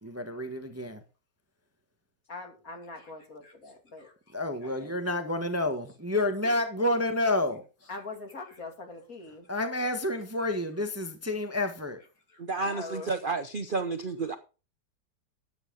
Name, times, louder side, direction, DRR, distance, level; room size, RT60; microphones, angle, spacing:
voice 1, 0.0-1.0 4.3-7.6 9.5-12.0, left 1 dB, 10° right, 1.2 m, -29 dB
voice 2, 2.3-4.4 4.6-4.7 7.9-9.5 12.3-13.1, left 3 dB, 55° left, 3.1 m, -43 dB
voice 3, 12.4-14.4, right 4 dB, 45° right, 0.7 m, -31 dB
13.5 x 9.5 x 3.8 m
omnidirectional pair, 1.8 m